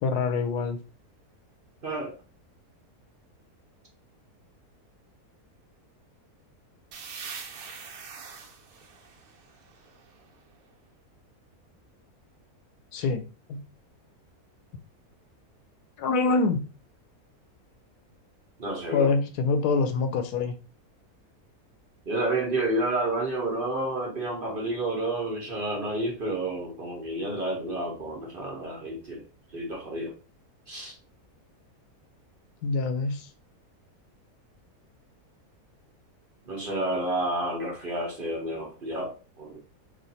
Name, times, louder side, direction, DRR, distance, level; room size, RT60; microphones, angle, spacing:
voice 1, 0.0-0.8 12.9-13.2 13.5-13.6 16.0-16.7 18.9-20.5 32.6-33.3, left 4 dB, 85° left, 1.2 m, -25 dB
voice 2, 1.8-2.2 18.6-19.1 22.1-29.2 29.5-30.1 30.7-30.9 36.5-39.6, right 1 dB, 45° right, 0.8 m, -30 dB
sound 1, 6.9-10.5, right 5 dB, 70° right, 1.1 m, -43 dB
3.2 x 2.5 x 4.0 m
omnidirectional pair, 1.7 m